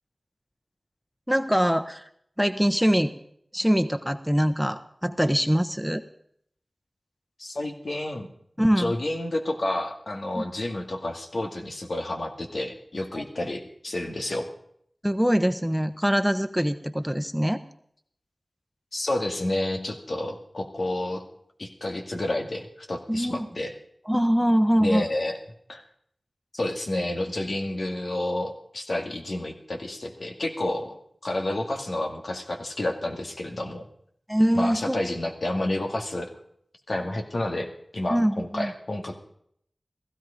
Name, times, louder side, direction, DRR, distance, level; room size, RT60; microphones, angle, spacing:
voice 1, 1.3-2.0 2.4-3.1 3.5-6.0 8.6-8.9 10.3-10.4 13.1-13.2 15.0-17.6 23.1-23.5 24.1-25.0 34.3-35.0 38.1-38.7, equal, ahead, 9 dB, 1.0 m, -23 dB
voice 2, 7.4-8.3 8.8-14.5 18.9-21.2 21.6-23.7 24.8-25.3 25.7-25.8 26.5-33.9 34.5-36.3 36.9-39.2, left 1 dB, 80° left, 3 dB, 2.2 m, -30 dB
16.0 x 15.5 x 5.1 m, 0.67 s
wide cardioid pair, 45°, 0 cm